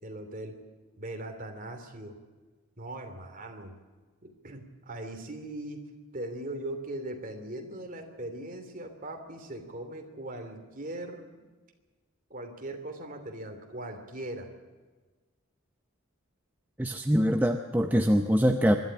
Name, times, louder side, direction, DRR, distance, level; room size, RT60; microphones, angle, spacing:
voice 1, 0.0-0.6 1.0-2.1 2.8-3.7 4.2-5.8 6.1-11.4 12.3-14.5, right 1 dB, 35° right, 5 dB, 2.7 m, -40 dB
voice 2, 16.8-18.8, equal, 10° right, 5 dB, 0.6 m, -24 dB
24.5 x 12.5 x 10.0 m, 1.3 s
head